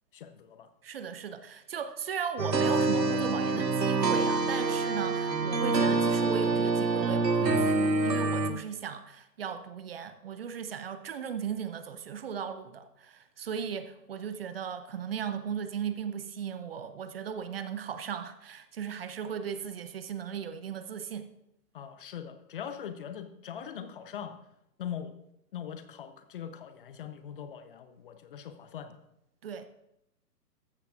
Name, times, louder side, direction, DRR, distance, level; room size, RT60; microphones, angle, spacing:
voice 1, 0.1-0.7 21.7-24.4 24.8-25.2 25.5-29.0, left 8 dB, 35° left, 9 dB, 0.8 m, -41 dB
voice 2, 0.8-21.3 29.4-29.7, right 7 dB, 35° right, 10 dB, 0.7 m, -37 dB
sound 1, 2.4-8.5, right 3 dB, 80° right, 1.3 m, -26 dB
14.0 x 13.5 x 2.5 m, 0.81 s
figure-of-eight pair, 125°, 49 cm